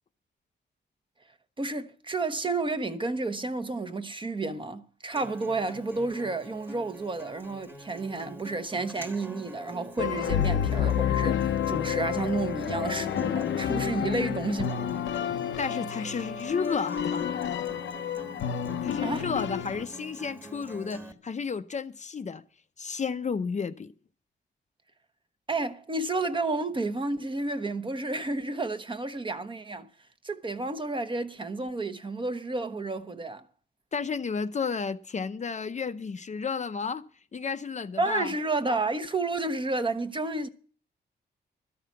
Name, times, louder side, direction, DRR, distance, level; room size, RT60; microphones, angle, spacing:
voice 1, 1.6-14.8 19.0-19.3 25.5-29.9 30.2-33.4 38.0-40.5, right 3 dB, 25° right, 1.0 m, -31 dB
Acoustic guitar, 5.1-21.1, right 1 dB, 10° right, 1.5 m, -45 dB
sound 1, 10.0-19.8, left 9 dB, 90° left, 0.8 m, -29 dB
voice 2, 15.6-17.3 18.8-22.4 22.8-23.9 33.9-37.0 37.3-38.4, left 5 dB, 40° left, 0.6 m, -32 dB
13.0 x 5.8 x 9.1 m
wide cardioid pair, 115°, 19 cm